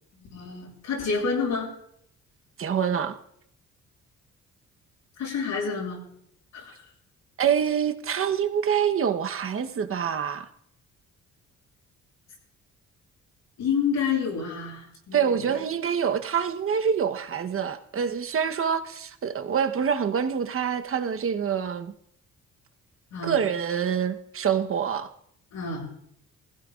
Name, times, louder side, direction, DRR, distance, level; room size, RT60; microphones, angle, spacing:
voice 1, 0.2-1.7 5.2-6.0 6.5-6.8 13.6-15.4 23.1-23.4 25.5-25.9, left 5 dB, 75° left, 7.3 m, -29 dB
voice 2, 2.6-3.2 7.4-10.5 15.1-21.9 23.2-25.1, right 7 dB, 45° right, 1.1 m, -26 dB
20.0 x 15.5 x 2.5 m
cardioid pair, 90°, 30 cm